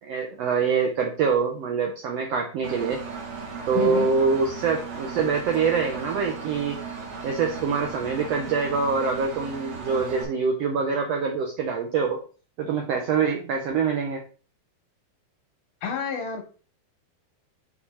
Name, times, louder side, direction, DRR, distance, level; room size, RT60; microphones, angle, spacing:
voice 1, 0.0-3.0 3.7-6.8 7.2-12.2 12.6-14.2, right 5 dB, 90° right, 2 dB, 1.4 m, -25 dB
Engine, 2.6-10.2, right 5 dB, 55° right, 2.4 m, -36 dB
voice 2, 3.7-4.1 15.8-16.4, left 6 dB, 75° left, 3 dB, 2.2 m, -28 dB
5.0 x 4.7 x 4.2 m, 0.38 s
omnidirectional pair, 4.0 m